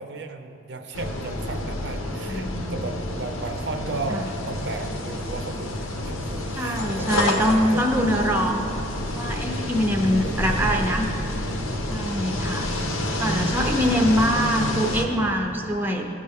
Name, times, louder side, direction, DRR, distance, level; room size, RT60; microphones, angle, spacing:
voice 1, 0.0-7.3 7.7-7.9 10.1-10.9 12.8-14.1, right 3 dB, 55° right, 6 dB, 0.5 m, -35 dB
sound 1, 0.9-15.0, left 1 dB, 90° left, 0.9 m, -29 dB
voice 2, 2.3-2.9 4.1-4.3 6.5-8.7 9.1-11.1 11.9-12.7 13.2-16.1, equal, 10° right, 2 dB, 0.5 m, -23 dB
15.5 x 5.4 x 3.5 m, 2.9 s
head